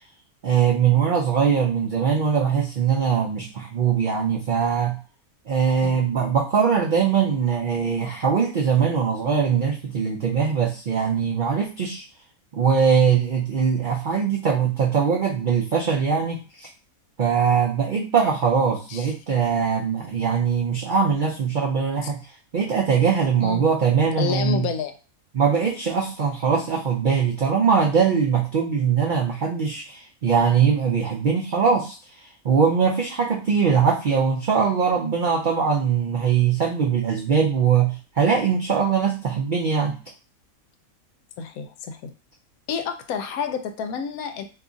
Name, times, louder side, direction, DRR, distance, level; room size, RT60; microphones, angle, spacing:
voice 1, 0.4-5.0 5.5-12.0 12.5-16.7 17.2-22.2 22.5-24.7 25.3-32.0 32.4-40.0, right 6 dB, 80° right, -1 dB, 0.4 m, -21 dB
voice 2, 24.2-24.9 41.4-42.1 42.7-44.4, left 6 dB, 80° left, 7 dB, 1.0 m, -29 dB
2.8 x 2.4 x 3.8 m, 0.35 s
omnidirectional pair, 1.5 m